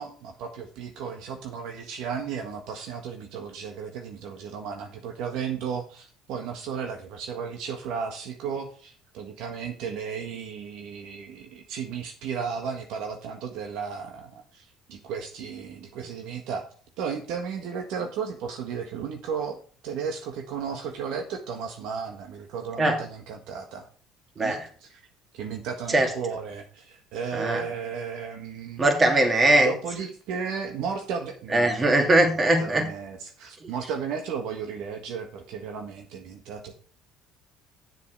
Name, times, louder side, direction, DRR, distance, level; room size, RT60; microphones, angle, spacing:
voice 1, 0.0-16.7 17.0-19.6 19.8-23.8 24.4-24.6 25.3-28.9 29.5-31.9 32.3-36.7, right 6 dB, 70° right, 4 dB, 1.5 m, -34 dB
voice 2, 24.4-24.7 25.9-26.1 27.3-27.6 28.8-29.7 31.5-32.9 33.6-33.7, right 1 dB, 25° right, 4 dB, 2.7 m, -21 dB
9.2 x 7.2 x 4.7 m, 0.43 s
supercardioid pair, 75°, 0 cm